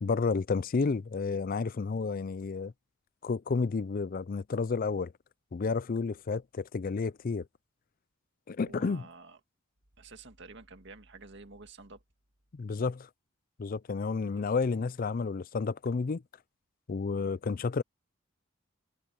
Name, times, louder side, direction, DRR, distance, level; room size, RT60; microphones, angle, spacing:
voice 1, 0.0-2.7 3.2-5.1 5.5-7.5 8.5-9.1 12.5-13.1 13.6-16.2 16.9-17.8, left 4 dB, 45° left, 0.4 m, -31 dB
voice 2, 8.6-9.4 10.0-12.0 14.3-14.5, right 3 dB, 60° right, 2.0 m, -50 dB
head